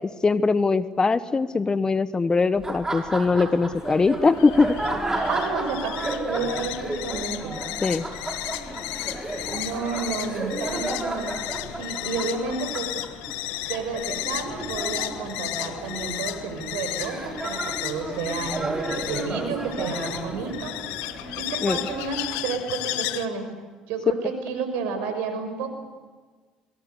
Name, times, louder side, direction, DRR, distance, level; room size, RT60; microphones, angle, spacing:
voice 1, 0.2-4.8 7.8-8.1 21.6-21.8, left 4 dB, 25° left, 15 dB, 1.2 m, -21 dB
Laughter, 2.5-22.4, right 2 dB, 15° right, 6.1 m, -33 dB
sound 1, 3.5-23.3, left 16 dB, 75° left, 1.1 m, -34 dB
voice 2, 5.3-7.6 9.5-11.4 11.8-12.9 13.7-20.7 21.4-23.5 23.9-25.7, right 5 dB, 75° right, 7 dB, 5.9 m, -31 dB
27.0 x 22.5 x 8.3 m, 1.4 s
hypercardioid pair, 65°, 3 cm